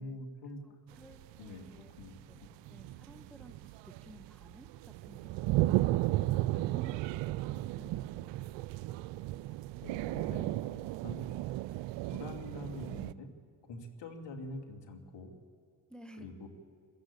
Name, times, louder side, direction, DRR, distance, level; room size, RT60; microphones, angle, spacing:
voice 1, 0.0-0.8 1.4-2.5 9.8-11.3 12.1-13.3 13.7-15.3 16.2-16.5, left 2 dB, 60° left, 4 dB, 2.8 m, -45 dB
voice 2, 0.7-1.9 2.3-2.4 2.7-5.8 6.5-8.4 15.9-16.3, equal, ahead, 6 dB, 1.6 m, -55 dB
sound 1, 1.0-13.1, right 16 dB, 65° right, 0.6 m, -34 dB
23.0 x 13.5 x 8.5 m, 2.2 s
hypercardioid pair, 40°, 47 cm